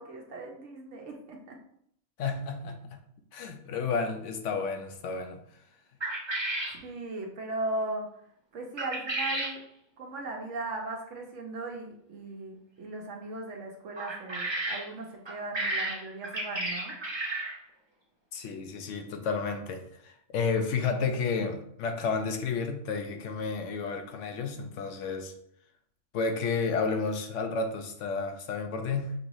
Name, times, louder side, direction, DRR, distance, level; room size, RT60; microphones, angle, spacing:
voice 1, 0.0-1.6 6.7-8.1 8.5-9.6 10.0-17.0, right 2 dB, 70° right, 1 dB, 1.1 m, -38 dB
voice 2, 2.2-3.0 3.3-5.4 18.3-25.3 26.1-29.1, left 4 dB, 75° left, 5 dB, 0.9 m, -31 dB
sound 1, 6.0-6.8 8.8-9.6 14.0-14.9 15.3-17.6, right 2 dB, 30° right, 0.6 m, -32 dB
5.4 x 2.6 x 3.0 m, 0.70 s
omnidirectional pair, 1.3 m